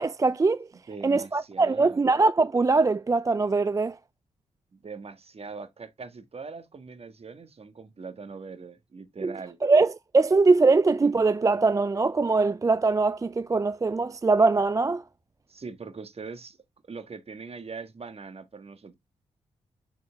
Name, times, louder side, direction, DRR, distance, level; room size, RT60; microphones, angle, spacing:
voice 1, 0.0-0.7 1.0-4.0 9.2-9.3 9.6-15.0, right 3 dB, 25° right, 0.4 m, -22 dB
voice 2, 0.9-2.0 4.7-9.6 15.5-16.6 16.8-18.9, right 4 dB, 50° right, 1.5 m, -41 dB
7.0 x 4.5 x 3.5 m
supercardioid pair, 45°, 14 cm